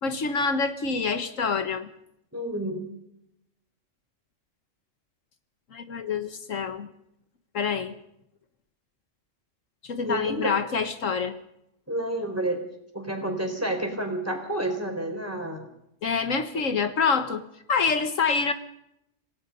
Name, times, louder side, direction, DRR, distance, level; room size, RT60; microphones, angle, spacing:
voice 1, 0.0-1.9 5.7-6.9 7.5-7.9 9.8-11.3 16.0-18.5, left 5 dB, 75° left, 9 dB, 1.6 m, -26 dB
voice 2, 2.3-2.9 10.0-10.6 11.9-12.6 12.9-15.7 16.5-16.6, right 1 dB, 10° right, 4 dB, 4.4 m, -30 dB
27.0 x 17.5 x 5.5 m, 0.79 s
omnidirectional pair, 1.4 m